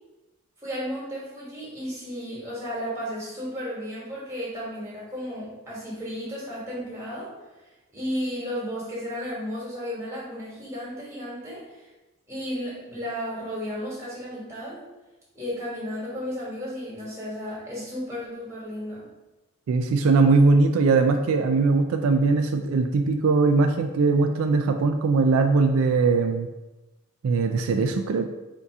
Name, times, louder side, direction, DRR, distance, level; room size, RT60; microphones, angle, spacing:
voice 1, 0.6-7.3 7.9-11.8 12.3-14.8 15.3-19.1, equal, 15° right, -7 dB, 1.3 m, -33 dB
voice 2, 19.7-26.5 27.2-28.3, right 4 dB, 80° right, 5 dB, 0.3 m, -20 dB
3.5 x 2.7 x 4.6 m, 1.1 s
head